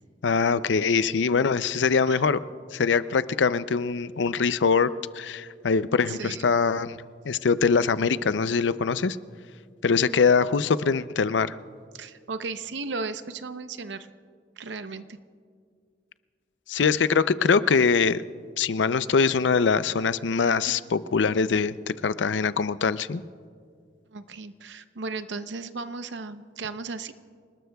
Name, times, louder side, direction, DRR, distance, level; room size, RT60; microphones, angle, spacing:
voice 1, 0.2-2.4 2.7-4.9 5.1-7.0 7.2-9.2 9.8-11.5 16.7-18.2 18.6-23.2, left 5 dB, 85° left, 14 dB, 0.5 m, -23 dB
voice 2, 6.1-6.4 11.9-14.1 14.6-15.2 20.6-20.7 24.1-27.1, right 4 dB, 80° right, 11 dB, 0.7 m, -35 dB
28.0 x 19.5 x 2.3 m, 2.1 s
head